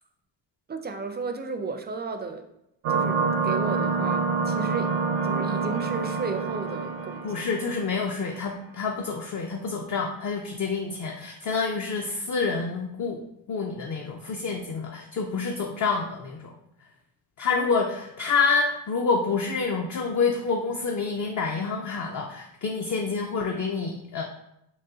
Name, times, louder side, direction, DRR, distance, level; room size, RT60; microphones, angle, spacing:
voice 1, 0.7-2.4 2.9-5.0 5.2-7.4, right 4 dB, 25° right, 6 dB, 0.3 m, -34 dB
sound 1, 2.8-8.1, right 4 dB, 80° right, 0.7 m, -27 dB
voice 2, 7.2-13.2 13.5-16.5 17.4-24.2, left 4 dB, 40° left, 1 dB, 0.4 m, -28 dB
3.9 x 2.2 x 3.8 m, 0.81 s
cardioid pair, 95°, 45 cm